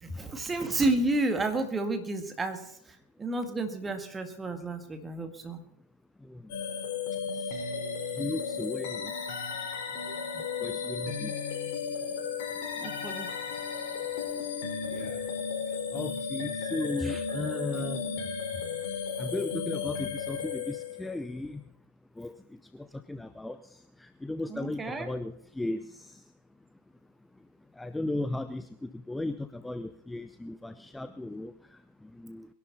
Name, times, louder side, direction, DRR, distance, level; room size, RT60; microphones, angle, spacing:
voice 1, 0.0-5.6 12.8-13.3 17.0-17.2 24.5-25.1, right 2 dB, 15° right, 7 dB, 2.0 m, -31 dB
sound 1, 6.5-21.3, left 6 dB, 50° left, 5.1 m, -34 dB
voice 2, 8.2-9.1 10.6-11.3 14.9-15.2 15.9-18.1 19.2-21.6 22.2-22.3 23.1-23.6 24.2-25.8 27.8-31.5 32.2-32.5, left 2 dB, 5° left, 12 dB, 0.6 m, -35 dB
22.0 x 11.5 x 4.1 m, 0.71 s
figure-of-eight pair, 90°, 0 cm